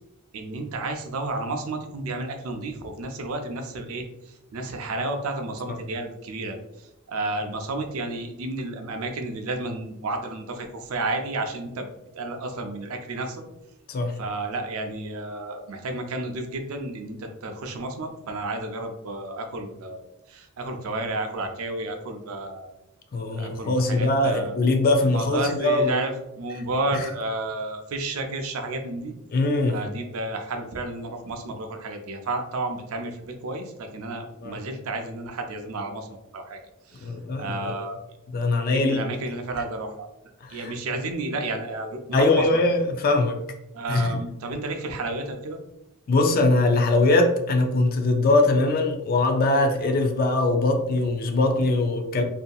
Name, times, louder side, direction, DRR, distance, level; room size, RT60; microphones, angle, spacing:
voice 1, 0.3-4.0 4.5-6.6 7.1-11.9 12.1-13.4 14.2-20.0 20.3-22.7 23.4-24.5 25.1-29.1 29.7-36.6 36.9-37.1 37.4-38.0 38.7-40.1 40.5-42.4 43.7-45.6, right 2 dB, 80° right, 5 dB, 0.5 m, -31 dB
voice 2, 23.1-26.0 26.9-27.1 29.3-29.8 34.4-34.5 37.0-37.7 38.3-39.0 40.4-40.7 42.1-43.4 43.9-44.2 46.1-52.2, left 2 dB, 45° left, 4 dB, 0.3 m, -22 dB
2.7 x 2.6 x 2.2 m, 0.88 s
head